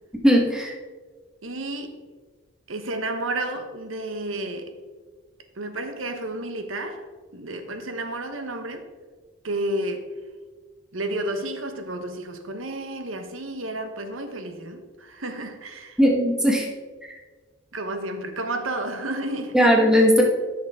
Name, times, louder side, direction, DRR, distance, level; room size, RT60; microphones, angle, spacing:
voice 1, 0.2-0.7 16.0-16.7 19.5-20.2, equal, 5° right, 0 dB, 1.2 m, -18 dB
voice 2, 1.4-2.0 2.7-4.7 5.6-7.1 7.3-8.9 9.4-10.1 10.9-16.0 17.7-19.6, right 1 dB, 85° right, 6 dB, 1.1 m, -31 dB
13.5 x 6.2 x 3.6 m, 1.4 s
head